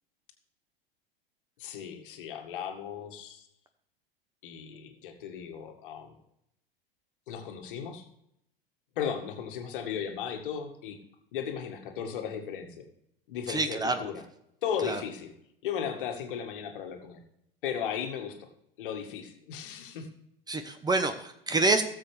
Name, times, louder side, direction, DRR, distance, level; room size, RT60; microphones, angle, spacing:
voice 1, 1.6-3.5 4.4-6.1 7.3-8.0 9.0-11.0 11.3-12.9 13.3-14.2 14.6-15.3 15.6-17.2 17.6-18.5 18.8-20.1, left 8 dB, 60° left, 4 dB, 1.9 m, -36 dB
voice 2, 13.5-14.1 14.8-15.0 20.5-21.8, right 3 dB, 15° right, 8 dB, 1.0 m, -27 dB
18.0 x 7.4 x 3.4 m, 0.76 s
figure-of-eight pair, 80°, 29 cm